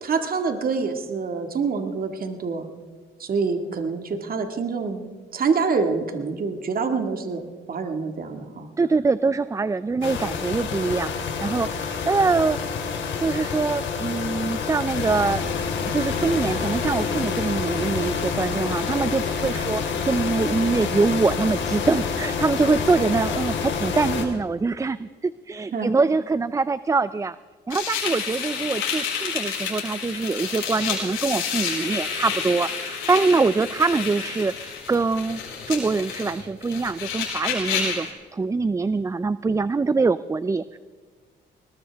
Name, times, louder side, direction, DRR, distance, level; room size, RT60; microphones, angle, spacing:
voice 1, 0.0-2.7 3.2-7.4 7.7-8.7 25.7-26.0, right 4 dB, 45° right, 5 dB, 1.9 m, -26 dB
voice 2, 8.8-12.6 13.2-15.4 15.9-27.4 27.7-35.4 35.7-40.8, right 4 dB, 15° right, 16 dB, 0.4 m, -24 dB
sound 1, 10.0-24.2, left 5 dB, 70° left, 3.1 m, -27 dB
sound 2, 27.7-38.1, left 6 dB, 90° left, 5.0 m, -30 dB
20.5 x 20.5 x 3.5 m, 1.5 s
cardioid pair, 90°, 20 cm